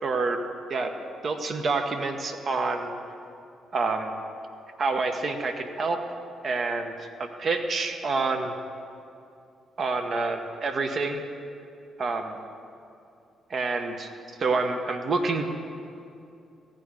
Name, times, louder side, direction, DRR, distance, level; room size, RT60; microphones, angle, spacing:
voice 1, 0.0-0.4 0.7-0.9 1.2-2.9 3.7-4.1 4.8-6.0 6.4-6.9 7.2-8.5 9.8-11.2 12.0-12.4 13.5-14.1 14.4-15.4, right 3 dB, 50° right, 6 dB, 1.0 m, -27 dB
15.0 x 5.2 x 9.7 m, 2.6 s
hypercardioid pair, 45°, 0 cm